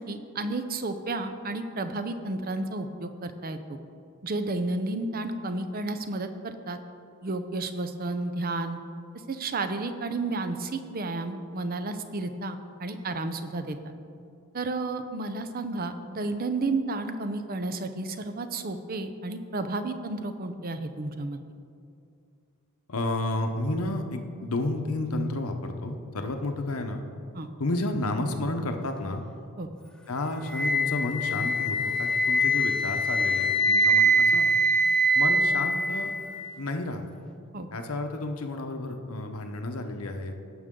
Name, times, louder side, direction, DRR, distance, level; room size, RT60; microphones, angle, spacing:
voice 1, 0.0-3.6 4.2-6.8 7.2-8.8 9.3-13.9 14.5-21.4 27.3-27.5 29.6-29.7 37.5-37.7, right 2 dB, 40° right, 8 dB, 0.6 m, -32 dB
voice 2, 22.9-27.0 27.6-29.2 30.1-34.5 35.1-36.1 36.6-37.0 37.7-40.3, left 2 dB, 70° left, 5 dB, 0.9 m, -31 dB
Wind instrument woodwind instrument, 30.5-36.5, right 1 dB, 5° left, 0.4 m, -23 dB
17.0 x 6.4 x 3.8 m, 2.5 s
head